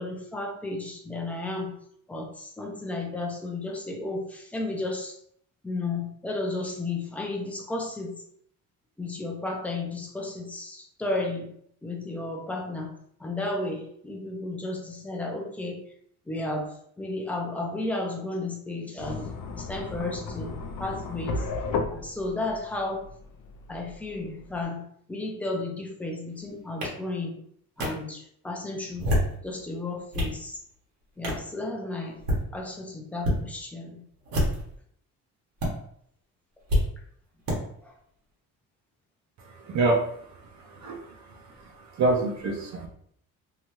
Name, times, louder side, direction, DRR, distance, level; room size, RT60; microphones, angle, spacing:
voice 1, 0.0-1.7 2.1-5.2 5.6-8.2 9.0-11.5 11.8-12.9 13.2-15.8 16.3-19.3 19.5-21.5 21.9-23.1 23.7-27.4 27.8-29.1 29.4-30.6 31.2-32.2 32.5-34.0 37.8-37.9, left 2 dB, 5° left, 1 dB, 0.4 m, -33 dB
sound 1, 19.0-24.6, left 4 dB, 65° left, 0.5 m, -35 dB
sound 2, 26.8-26.9 27.8-27.9 28.9-29.4 29.9-30.4 31.2-31.5 32.1-32.4 33.2-33.4 34.2-34.7 35.6-35.7 36.7-36.8 37.5-37.6, equal, 90° right, 1.1 m, -26 dB
voice 2, 39.6-40.0 40.7-41.1 41.9-42.9, right 2 dB, 55° right, 0 dB, 0.6 m, -25 dB
2.8 x 2.3 x 2.9 m, 0.66 s
cardioid pair, 150°, 35 cm